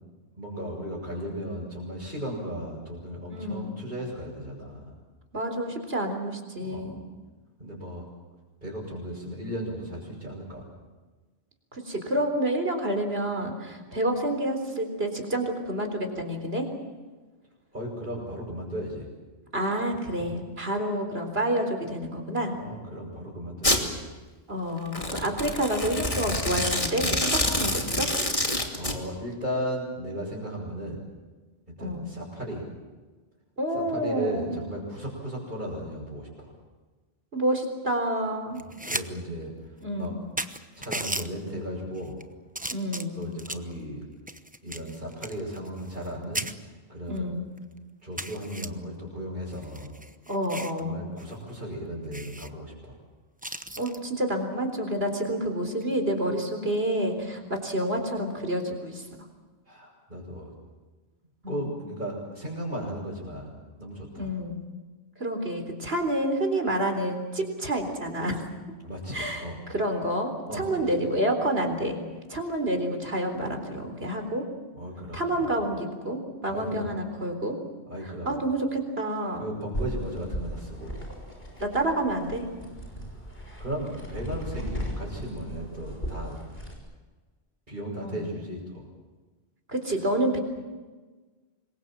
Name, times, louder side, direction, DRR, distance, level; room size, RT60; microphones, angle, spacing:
voice 1, 0.4-4.9 6.6-7.0 7.6-8.1 8.6-10.7 17.7-19.1 22.5-24.1 25.2-25.3 28.7-31.0 31.7-32.6 33.9-36.5 38.5-39.5 40.0-40.1 40.8-42.2 43.1-44.1 44.6-47.4 48.0-49.9 50.8-52.9 59.7-60.5 61.5-63.5 63.8-64.3 68.8-69.6 70.5-70.8 74.7-75.5 76.5-76.9 77.9-78.3 79.4-80.9 83.6-86.4 87.7-88.8, equal, 50° right, -7 dB, 7.0 m, -36 dB
voice 2, 3.3-3.8 5.3-7.0 11.7-16.7 19.5-22.6 24.5-28.1 31.8-32.1 33.6-34.6 37.3-38.6 39.8-40.2 42.7-43.3 47.1-47.5 50.3-51.1 53.8-59.1 61.4-61.7 64.2-64.7 65.2-68.4 69.1-69.4 69.7-72.0 72.3-74.4 75.1-77.6 78.0-79.5 81.6-82.5 88.0-88.3 89.7-90.4, right 1 dB, 70° right, 5 dB, 4.2 m, -29 dB
Domestic sounds home sounds, 23.6-23.8 24.9-29.0, left 1 dB, 30° left, 2.7 m, -27 dB
sound 1, 38.6-39.1 39.4-39.5 40.0-40.1 40.4-41.3 42.0-42.2 42.5-43.7 44.3-46.1 46.3-46.5 47.2-47.3 47.6-47.7 48.2-48.7 49.5-50.8 51.2-51.3 51.6-51.7 52.1-52.5 53.4-54.0 55.7-55.9, right 1 dB, 10° right, 0.9 m, -35 dB
sound 2, 79.7-86.7, equal, 60° left, 6.3 m, -37 dB
26.5 x 22.5 x 7.6 m, 1.3 s
omnidirectional pair, 1.1 m